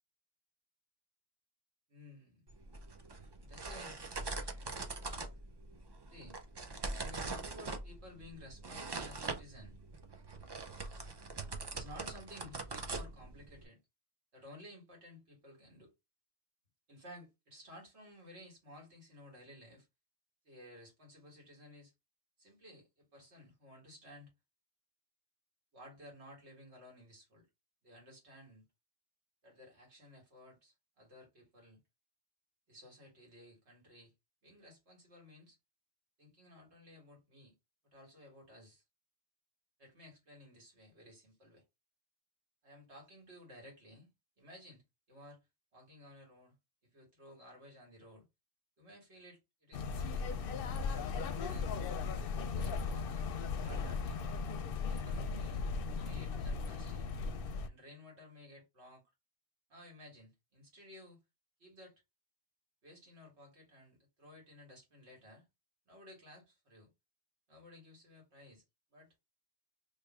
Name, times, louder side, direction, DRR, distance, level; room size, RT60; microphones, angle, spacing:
voice 1, 1.9-2.5 3.4-5.3 6.1-6.4 7.0-9.8 11.7-13.8 14.3-15.9 16.9-19.9 20.4-21.9 22.4-24.3 25.7-27.5 27.8-28.6 29.4-31.8 32.7-34.1 34.4-35.6 36.2-37.5 37.9-38.8 39.8-41.6 42.6-44.1 44.4-45.4 45.7-46.6 46.8-48.2 48.8-50.3 50.9-51.8 52.6-54.3 54.8-55.7 56.0-57.1 57.6-59.0 59.7-61.2 61.6-62.0 62.8-65.5 65.9-66.9 67.5-68.6 68.9-69.2, left 1 dB, 75° right, 1.9 m, -56 dB
sound 1, 2.5-13.7, right 3 dB, 40° right, 0.3 m, -43 dB
sound 2, 49.7-57.7, left 4 dB, 60° left, 0.7 m, -37 dB
3.1 x 2.5 x 3.5 m
omnidirectional pair, 1.2 m